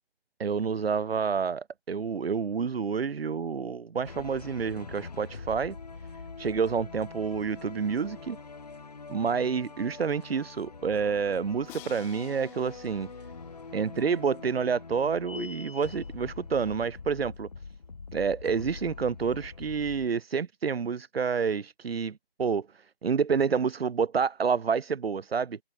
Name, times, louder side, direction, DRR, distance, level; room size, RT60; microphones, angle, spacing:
voice 1, 0.4-5.8 6.4-8.4 9.1-13.1 13.7-17.5 18.1-22.7 23.0-25.6, right 6 dB, 75° right, 0.7 m, -28 dB
sound 1, 4.0-20.1, left 4 dB, 40° left, 1.7 m, -44 dB
Crash cymbal, 11.7-14.6, left 23 dB, 10° left, 3.6 m, -52 dB
sound 2, 15.3-16.1, left 3 dB, 65° left, 5.0 m, -42 dB
figure-of-eight pair, 165°, 31 cm